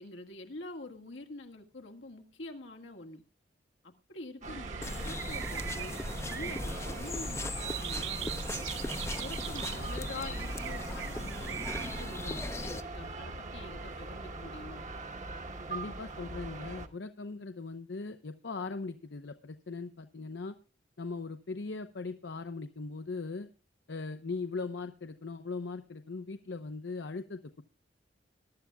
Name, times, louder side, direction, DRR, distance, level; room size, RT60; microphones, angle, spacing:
voice 1, 0.0-3.2 3.8-8.7 9.2-14.8, left 2 dB, 85° left, 3 dB, 1.8 m, -46 dB
sound 1, 4.4-16.9, right 2 dB, 40° right, 1.2 m, -42 dB
sound 2, 4.5-12.0, right 8 dB, 80° right, 0.6 m, -41 dB
sound 3, 4.8-12.8, left 2 dB, 15° left, 0.6 m, -38 dB
voice 2, 15.7-20.6 21.0-23.5 23.9-27.6, left 4 dB, 70° left, 8 dB, 0.7 m, -39 dB
21.5 x 11.5 x 2.3 m, 0.31 s
head